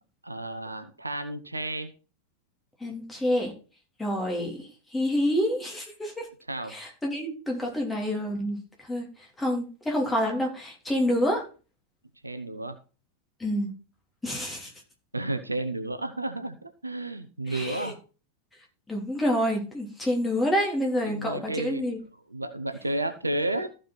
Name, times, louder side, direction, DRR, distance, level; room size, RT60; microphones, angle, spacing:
voice 1, 0.2-1.9 6.5-6.7 12.2-12.8 15.1-17.9 21.1-21.8 22.3-23.7, right 1 dB, 85° right, 9 dB, 0.9 m, -32 dB
voice 2, 2.8-3.5 4.0-6.3 6.7-9.1 9.4-11.5 13.4-13.7 14.2-14.7 17.5-17.9 18.9-22.0, equal, 10° left, -1 dB, 3.3 m, -28 dB
14.5 x 5.1 x 4.1 m, 0.35 s
figure-of-eight pair, 90°, 0 cm